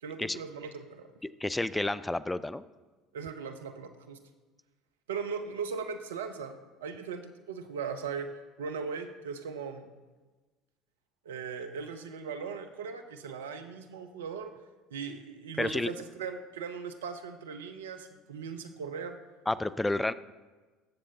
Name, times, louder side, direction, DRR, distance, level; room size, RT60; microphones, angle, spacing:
voice 1, 0.0-1.1 3.1-4.2 5.1-8.3 8.6-9.9 11.2-14.5 14.9-19.2, right 5 dB, 75° right, 7 dB, 0.7 m, -38 dB
voice 2, 1.4-2.6 15.6-15.9 19.5-20.1, left 2 dB, 10° left, 16 dB, 0.4 m, -30 dB
19.0 x 7.5 x 2.8 m, 1.3 s
figure-of-eight pair, 65°, 0 cm